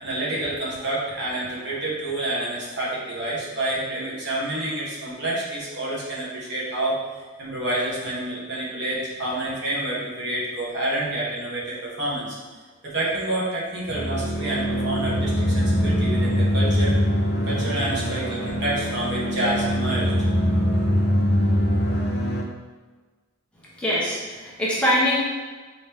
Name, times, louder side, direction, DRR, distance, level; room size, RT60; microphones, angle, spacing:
voice 1, 0.0-7.0 7.4-12.4 12.8-16.9 17.5-20.3, right 1 dB, 55° right, -6 dB, 1.3 m, -28 dB
sound 1, 13.9-22.4, equal, 50° left, 0.7 m, -23 dB
voice 2, 23.8-25.2, equal, 5° left, -8 dB, 0.9 m, -23 dB
5.0 x 3.0 x 3.5 m, 1.4 s
head